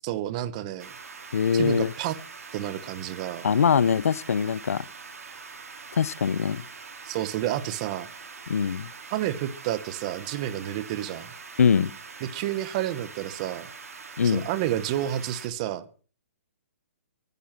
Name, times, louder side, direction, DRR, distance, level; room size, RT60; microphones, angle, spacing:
voice 1, 0.0-0.9 1.5-2.2 2.5-3.5 7.0-8.1 9.1-11.3 12.2-13.7 14.2-15.9, right 12 dB, 25° right, 1.2 m, -30 dB
sound 1, 0.8-15.5, right 5 dB, 85° right, 4.6 m, -44 dB
voice 2, 1.3-1.9 3.4-4.8 5.9-6.6 8.5-8.9 11.6-11.9 14.2-14.5, left 7 dB, 75° left, 0.8 m, -22 dB
20.0 x 11.0 x 6.0 m
hypercardioid pair, 165°, 8 cm